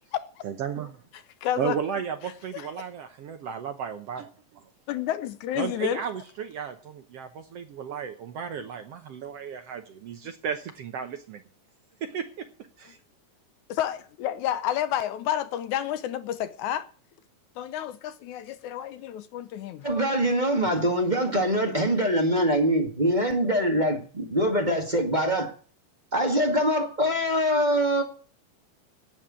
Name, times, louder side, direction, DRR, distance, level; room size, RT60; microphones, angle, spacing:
voice 1, 0.4-1.0 1.6-4.6 5.6-11.4 12.0-12.5 12.8-13.0, right 8 dB, 65° right, 1.7 m, -34 dB
voice 2, 1.4-1.8 2.5-2.7 4.9-6.0 13.7-16.9 17.6-19.8, left 11 dB, 75° left, 2.1 m, -30 dB
voice 3, 19.8-25.5 26.1-28.0, equal, 20° right, 1.5 m, -24 dB
11.5 x 9.0 x 8.7 m
omnidirectional pair, 3.6 m